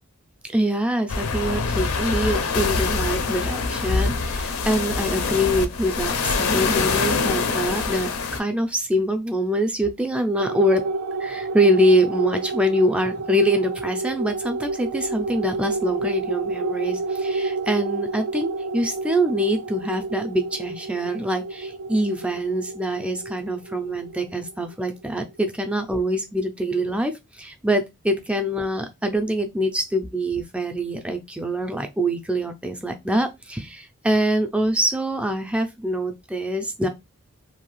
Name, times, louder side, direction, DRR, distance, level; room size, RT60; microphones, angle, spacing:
voice 1, 0.5-10.8 11.2-36.9, equal, 5° right, 0.3 m, -24 dB
sound 1, 1.1-8.4, left 4 dB, 85° left, 0.5 m, -24 dB
sound 2, 10.4-25.2, right 3 dB, 85° right, 0.4 m, -30 dB
2.7 x 2.3 x 3.0 m
head